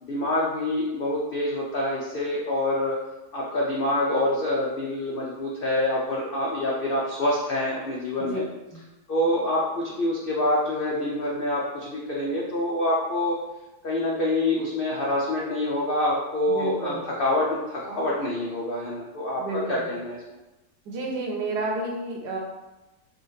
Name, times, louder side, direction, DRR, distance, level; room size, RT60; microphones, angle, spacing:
voice 1, 0.0-3.0 3.3-8.4 9.1-13.4 13.8-20.2, left 1 dB, 80° left, -4 dB, 0.5 m, -26 dB
voice 2, 16.5-17.0 19.4-19.9 20.8-22.4, right 2 dB, 80° right, 0 dB, 1.4 m, -30 dB
4.7 x 2.5 x 3.1 m, 1.0 s
omnidirectional pair, 1.7 m